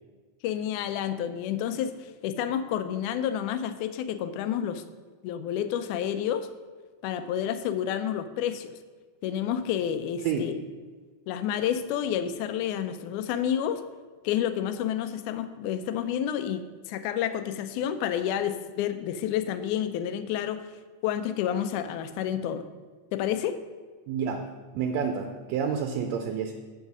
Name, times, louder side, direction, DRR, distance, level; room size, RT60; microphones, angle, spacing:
voice 1, 0.4-4.8 5.2-6.5 7.0-8.7 9.2-10.6 11.3-13.8 14.2-20.6 21.0-22.7 23.1-23.6, left 9 dB, 80° left, 10 dB, 2.0 m, -29 dB
voice 2, 24.1-24.5 24.7-26.5, right 6 dB, 75° right, 5 dB, 1.7 m, -29 dB
8.1 x 5.7 x 6.0 m, 1.4 s
omnidirectional pair, 3.6 m